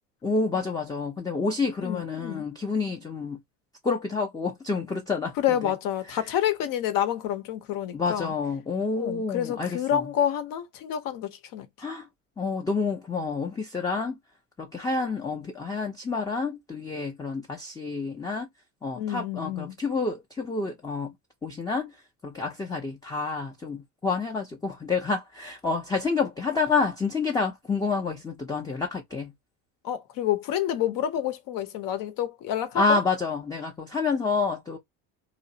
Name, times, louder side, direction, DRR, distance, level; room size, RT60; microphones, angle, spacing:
voice 1, 0.2-3.4 3.8-5.3 5.6-5.7 7.9-10.0 11.8-12.1 12.4-14.2 14.6-18.5 18.8-21.1 21.4-21.9 22.2-29.3 32.8-34.8, left 4 dB, 10° left, 0.5 m, -28 dB
voice 2, 1.8-2.5 5.4-8.3 9.0-11.7 18.9-19.8 29.8-33.0, left 10 dB, 55° left, 0.8 m, -28 dB
2.4 x 2.0 x 2.7 m
supercardioid pair, 95°, 40 cm